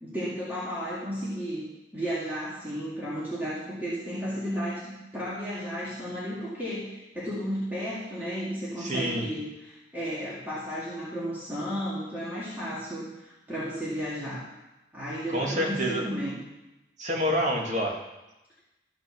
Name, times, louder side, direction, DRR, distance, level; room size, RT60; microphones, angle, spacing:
voice 1, 0.0-1.6 1.9-14.4 14.9-16.4, equal, 10° right, -9 dB, 2.2 m, -33 dB
voice 2, 8.8-9.2 15.3-16.0 17.0-18.0, equal, 40° right, -1 dB, 2.0 m, -27 dB
13.5 x 6.2 x 6.9 m, 0.99 s
head